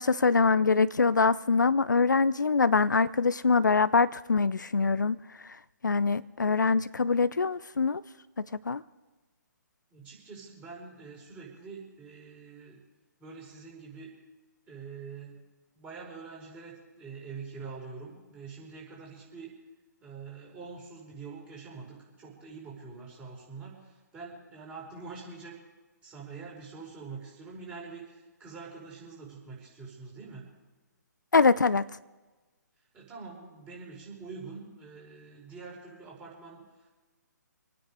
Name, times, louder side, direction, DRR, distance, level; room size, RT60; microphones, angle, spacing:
voice 1, 0.0-5.2 5.8-8.0 8.6-8.8 31.3-31.8, left 4 dB, 75° left, 0.6 m, -24 dB
voice 2, 9.9-12.8 13.2-14.1 14.7-15.4 15.7-19.5 20.0-25.6 26.0-30.5 32.9-36.6, right 4 dB, 15° right, 5.3 m, -45 dB
27.0 x 9.6 x 4.9 m
figure-of-eight pair, 135°, 10 cm